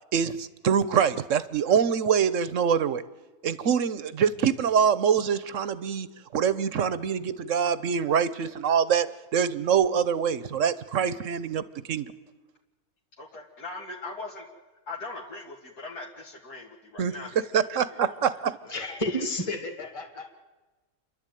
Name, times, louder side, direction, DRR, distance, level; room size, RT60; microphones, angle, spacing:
voice 1, 0.1-3.0 3.4-6.1 6.3-9.1 9.3-11.6 11.9-12.1 17.0-17.1 17.5-18.6, right 7 dB, 60° right, 15 dB, 1.2 m, -24 dB
voice 2, 13.2-14.5 14.9-18.4, left 3 dB, 80° left, -3 dB, 2.8 m, -41 dB
voice 3, 18.7-20.3, left 1 dB, 20° left, 4 dB, 2.2 m, -31 dB
29.5 x 11.5 x 9.2 m, 1.2 s
omnidirectional pair, 1.6 m